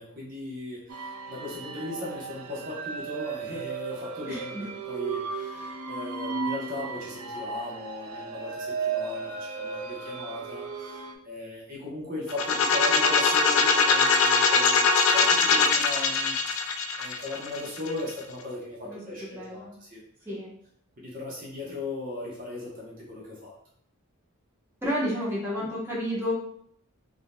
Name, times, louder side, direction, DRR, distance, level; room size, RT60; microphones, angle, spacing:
voice 1, 0.0-20.0 21.0-23.5, left 2 dB, 40° right, -5 dB, 0.8 m, -38 dB
sound 1, 0.9-11.1, right 5 dB, 80° right, 0.4 m, -35 dB
voice 2, 4.2-4.6 18.8-19.7 20.3-20.5 24.8-26.3, equal, 10° right, -8 dB, 1.0 m, -31 dB
sound 2, 12.3-18.1, left 4 dB, 55° left, 0.3 m, -22 dB
3.6 x 2.5 x 2.2 m, 0.65 s
head